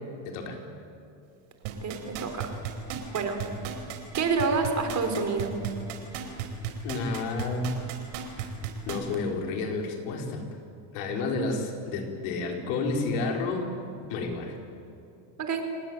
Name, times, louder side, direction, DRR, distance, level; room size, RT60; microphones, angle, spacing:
voice 1, 0.2-0.6 6.8-7.7 8.2-8.5 8.8-10.5 10.9-13.7 14.1-14.6, left 3 dB, 80° left, 3 dB, 4.7 m, -30 dB
sound 1, 1.6-9.2 9.6-9.7, right 9 dB, 90° right, 4.6 m, -34 dB
voice 2, 1.8-2.5 3.1-3.4 4.1-5.6 15.4-15.7, right 4 dB, 35° right, 5 dB, 4.1 m, -28 dB
30.0 x 19.5 x 9.2 m, 2.6 s
cardioid pair, 135°, 48 cm